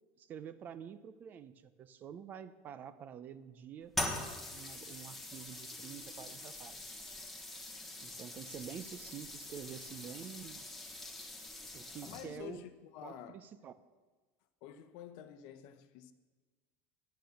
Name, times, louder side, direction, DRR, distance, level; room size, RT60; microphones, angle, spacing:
voice 1, 0.2-3.9 4.5-6.8 8.0-10.7 11.7-12.7 13.0-13.7, right 8 dB, 30° right, 0.5 m, -48 dB
sound 1, 3.9-12.5, left 1 dB, 5° left, 1.2 m, -43 dB
voice 2, 12.0-13.4 14.6-16.1, left 10 dB, 60° left, 0.9 m, -49 dB
11.0 x 9.3 x 6.4 m
supercardioid pair, 160°, 6 cm